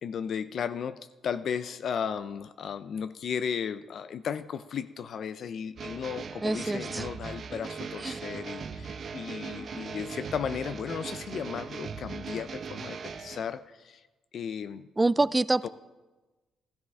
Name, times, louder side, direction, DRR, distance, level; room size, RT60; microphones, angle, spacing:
voice 1, 0.0-14.0 14.3-14.9 15.6-15.7, left 7 dB, 60° left, 13 dB, 0.4 m, -35 dB
sound 1, 5.8-13.5, right 5 dB, 50° right, 0.6 m, -39 dB
voice 2, 6.4-7.1 8.0-8.2 15.0-15.7, right 2 dB, 15° right, 18 dB, 0.3 m, -26 dB
12.5 x 12.5 x 3.5 m, 1.2 s
cardioid pair, 90°, 0 cm